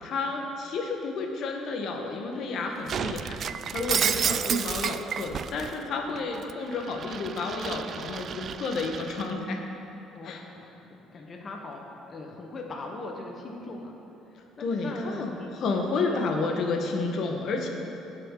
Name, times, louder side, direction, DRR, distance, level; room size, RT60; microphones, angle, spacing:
voice 1, 0.0-3.5 3.7-9.6 10.2-10.4 14.6-17.7, left 3 dB, 60° left, 2 dB, 1.4 m, -31 dB
Shatter, 2.9-5.7 6.2-9.3, right 8 dB, 50° right, 0.3 m, -31 dB
voice 2, 4.0-4.6 6.0-6.3 10.1-11.8 12.1-13.9 14.3-15.6 16.0-16.4, left 2 dB, 40° left, 1 dB, 1.2 m, -41 dB
17.5 x 6.5 x 3.9 m, 2.9 s
supercardioid pair, 90°, 0 cm